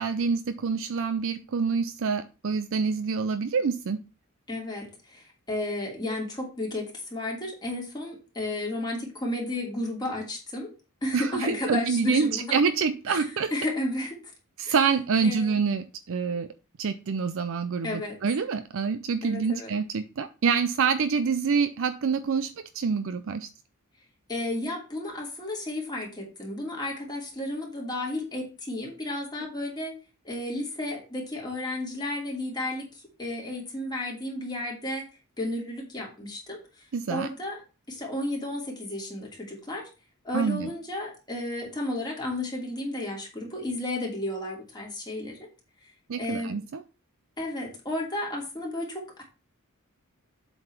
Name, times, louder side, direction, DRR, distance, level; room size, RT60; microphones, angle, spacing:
voice 1, 0.0-4.0 11.1-13.5 14.6-16.5 16.8-23.5 36.9-37.3 40.3-40.7 46.1-46.8, right 5 dB, 65° right, 11 dB, 0.5 m, -26 dB
voice 2, 4.5-10.7 11.0-12.6 13.1-14.3 14.6-14.8 15.2-15.6 17.8-18.2 19.2-19.7 24.3-29.9 30.2-35.1 35.4-36.6 37.1-37.6 37.9-39.9 40.2-45.4 45.8-45.9 46.2-46.6 47.4-49.2, left 1 dB, 20° left, -1 dB, 2.8 m, -33 dB
7.7 x 3.9 x 5.9 m, 0.32 s
head